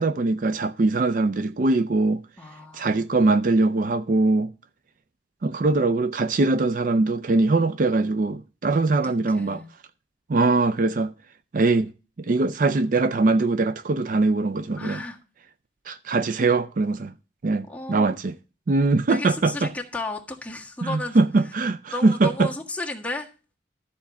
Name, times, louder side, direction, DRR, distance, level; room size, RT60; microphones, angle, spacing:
voice 1, 0.0-2.2 2.7-4.5 5.4-9.6 10.3-11.1 11.5-11.9 12.2-15.0 15.9-17.1 17.4-18.3 18.7-19.7 20.8-22.5, right 3 dB, 50° right, 0.4 m, -22 dB
voice 2, 2.4-3.3 9.0-9.7 14.7-15.2 17.6-18.1 19.1-21.2 21.9-23.3, left 2 dB, 10° left, 1.5 m, -34 dB
12.5 x 4.5 x 7.2 m
head